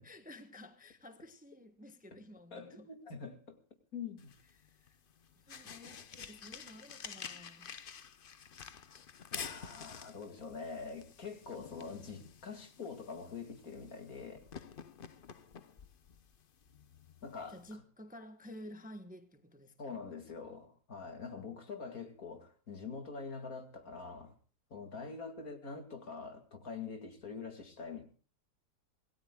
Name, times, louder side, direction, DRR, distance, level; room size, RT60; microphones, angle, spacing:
voice 1, 0.0-2.9 4.6-5.0 5.5-7.7 17.5-20.0, left 1 dB, 5° right, 1.1 m, -52 dB
voice 2, 2.5-3.6 3.9-4.3 9.3-14.5 17.2-17.6 19.8-24.4 24.7-28.0, left 5 dB, 60° left, 2.8 m, -45 dB
sound 1, 4.2-17.8, left 7 dB, 45° left, 0.8 m, -50 dB
26.5 x 18.0 x 2.3 m
omnidirectional pair, 1.7 m